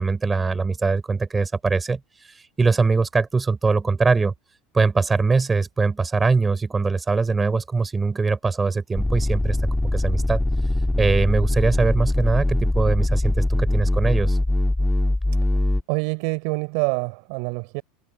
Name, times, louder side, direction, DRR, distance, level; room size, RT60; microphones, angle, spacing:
voice 1, 0.0-4.3 4.7-9.6 9.9-10.4 11.0-14.4, right 4 dB, 20° right, 5.3 m, -22 dB
sound 1, 9.0-15.8, left 1 dB, 5° left, 1.6 m, -22 dB
voice 2, 15.9-17.8, right 32 dB, 65° right, 4.3 m, -26 dB
hypercardioid pair, 95°, 0 cm